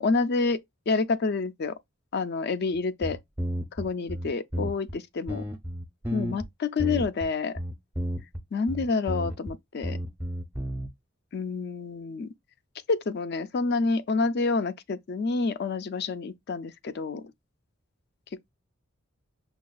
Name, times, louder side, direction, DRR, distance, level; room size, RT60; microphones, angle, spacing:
voice 1, 0.0-1.8 2.1-3.2 3.7-5.4 6.1-7.5 8.5-10.0 11.3-12.3 12.9-17.2, left 4 dB, 50° left, 0.4 m, -28 dB
sound 1, 2.8-2.9 3.0-4.9 5.3-6.5 6.8-7.3 7.6-8.4 8.7-9.5 9.8-10.9, equal, 10° right, 0.6 m, -32 dB
5.7 x 2.3 x 2.3 m
head